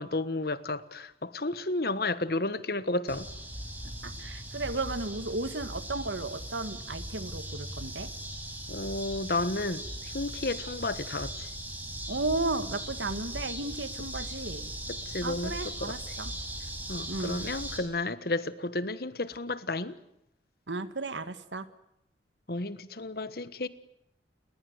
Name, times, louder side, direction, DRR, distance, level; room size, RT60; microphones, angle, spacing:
voice 1, 0.0-3.3 8.7-11.5 14.9-16.0 16.9-20.0 22.5-23.7, left 2 dB, 55° left, 1.4 m, -32 dB
sound 1, 3.1-17.8, right 1 dB, 10° right, 5.2 m, -39 dB
voice 2, 4.0-8.1 12.1-14.7 15.2-16.3 17.1-17.4 20.7-21.7, right 2 dB, 85° right, 1.8 m, -34 dB
30.0 x 20.0 x 8.0 m
head